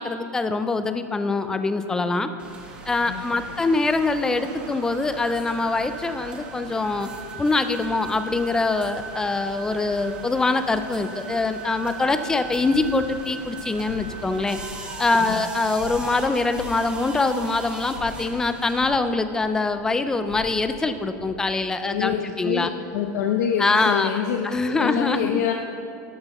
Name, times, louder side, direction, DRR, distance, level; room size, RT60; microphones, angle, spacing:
voice 1, 0.0-2.3 2.9-7.1 7.4-14.6 15.0-22.7 23.6-25.4, left 3 dB, 5° left, 10 dB, 0.3 m, -24 dB
sound 1, 1.4-15.1, right 6 dB, 65° right, 1.1 m, -41 dB
sound 2, 2.4-18.9, right 2 dB, 10° right, 0.9 m, -41 dB
sound 3, 12.6-21.5, left 2 dB, 90° left, 2.6 m, -44 dB
voice 2, 21.8-25.5, left 8 dB, 65° left, 2 dB, 0.7 m, -26 dB
12.5 x 12.5 x 3.0 m, 2.5 s
supercardioid pair, 165°, 10 cm